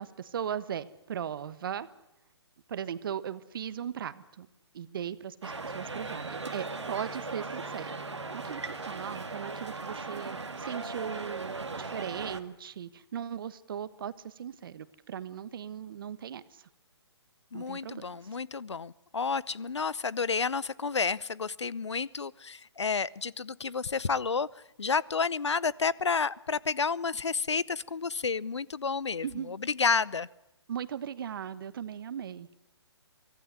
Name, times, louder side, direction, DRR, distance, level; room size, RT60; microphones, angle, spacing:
voice 1, 0.0-1.9 2.7-4.5 4.7-7.9 8.3-16.7 17.5-18.0 29.2-29.5 30.7-32.5, right 9 dB, 50° right, 15 dB, 1.3 m, -38 dB
sound 1, 5.4-12.4, right 3 dB, 90° right, 2.1 m, -38 dB
voice 2, 17.5-24.5 24.8-30.3, left 5 dB, 80° left, 23 dB, 0.8 m, -30 dB
24.0 x 16.5 x 9.6 m, 0.89 s
figure-of-eight pair, 140°, 14 cm